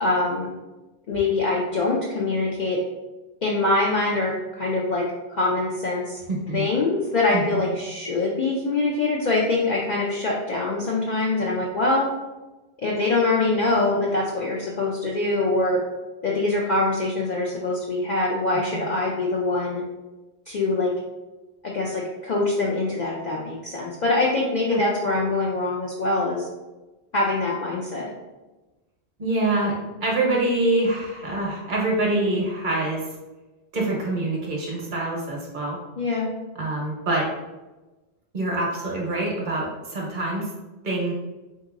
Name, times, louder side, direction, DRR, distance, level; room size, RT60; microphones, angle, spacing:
voice 1, 0.0-0.5 1.1-2.8 3.4-5.0 5.3-6.2 6.5-12.1 12.8-15.8 16.2-19.8 20.5-20.9 21.6-26.5 27.1-28.1 36.0-36.3, left 2 dB, 55° left, -4 dB, 0.5 m, -24 dB
voice 2, 6.3-6.7 7.3-7.7 18.7-18.8 24.7-24.8 29.2-29.7 30.0-33.0 33.7-35.8 36.5-37.3 38.3-40.5 40.8-41.1, right 2 dB, 55° right, -2 dB, 1.0 m, -25 dB
3.6 x 2.8 x 2.4 m, 1.1 s
omnidirectional pair, 1.1 m